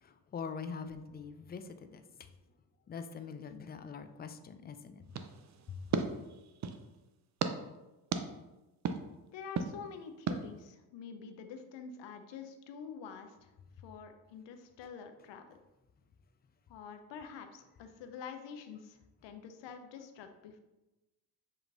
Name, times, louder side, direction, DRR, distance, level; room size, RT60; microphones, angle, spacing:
voice 1, 0.0-2.0 2.9-5.2 5.7-5.8, left 5 dB, 20° left, 9 dB, 0.3 m, -44 dB
sound 1, 5.1-6.9 7.4-7.5 8.1-8.2 8.9-9.0 9.6-9.7 10.3-10.4, right 6 dB, 35° right, 0.5 m, -35 dB
voice 2, 9.3-13.5 13.8-15.5 16.7-20.6, left 6 dB, 60° left, 7 dB, 0.7 m, -47 dB
6.5 x 3.0 x 2.6 m, 1.0 s
supercardioid pair, 65°, 49 cm